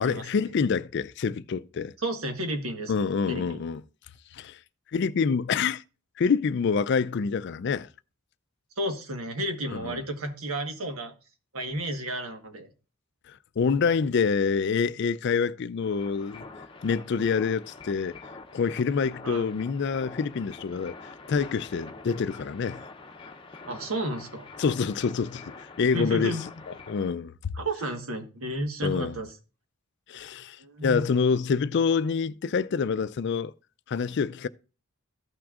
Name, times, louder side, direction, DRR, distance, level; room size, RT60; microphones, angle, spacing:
voice 1, 0.0-1.9 2.9-3.8 4.3-4.6 4.9-5.8 6.2-7.9 9.7-10.0 13.3-16.4 16.8-18.2 18.5-20.9 21.3-22.8 24.6-26.4 26.9-27.5 28.8-29.1 30.1-33.5 33.9-34.5, left 5 dB, 55° left, 0.4 m, -26 dB
voice 2, 2.0-3.6 8.8-11.1 11.5-12.7 19.2-19.5 23.7-24.5 25.9-26.4 27.5-29.3 30.6-31.0, right 1 dB, 85° right, 1.4 m, -32 dB
sound 1, 15.8-27.1, left 3 dB, 25° left, 0.7 m, -46 dB
14.5 x 6.0 x 2.4 m
head